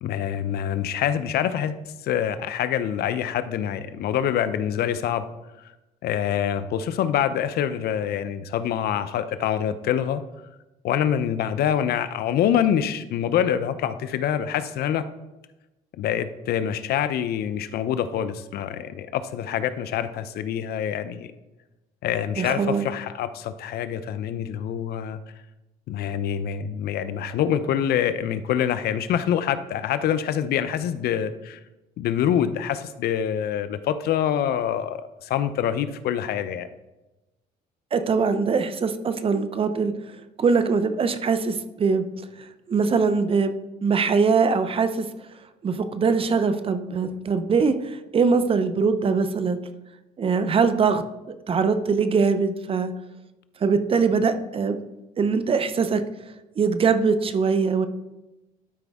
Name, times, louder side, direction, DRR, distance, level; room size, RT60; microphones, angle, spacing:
voice 1, 0.0-5.3 6.0-10.2 10.8-15.0 16.0-21.3 22.0-25.2 25.9-31.6 32.0-36.7, left 9 dB, 70° left, 12 dB, 0.6 m, -25 dB
voice 2, 22.4-22.8 37.9-39.9 40.4-42.0 42.7-43.5 43.8-45.1 45.6-47.7 48.1-49.6 50.2-51.0 51.5-52.9 53.6-54.8 55.2-56.0 56.6-57.9, right 5 dB, 35° right, 10 dB, 0.6 m, -22 dB
12.0 x 5.0 x 3.5 m, 1.0 s
cardioid pair, 110°, 17 cm